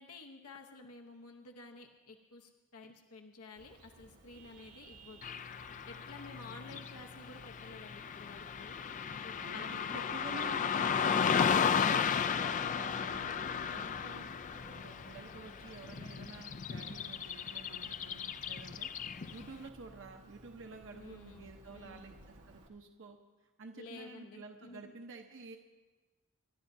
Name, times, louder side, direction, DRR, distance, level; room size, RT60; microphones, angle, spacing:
voice 1, 0.0-5.2 5.9-8.8 9.1-10.1 20.9-22.0 23.7-24.9, left 3 dB, 75° left, 3 dB, 0.9 m, -52 dB
Vehicle horn car horn honking, 3.6-22.7, right 1 dB, 80° right, 1.5 m, -58 dB
Car passing by / Traffic noise roadway noise, 5.2-19.5, left 7 dB, 35° left, 0.3 m, -34 dB
voice 2, 9.4-25.6, right 3 dB, 60° right, 3 dB, 0.9 m, -51 dB
28.0 x 12.0 x 2.7 m, 1.2 s
head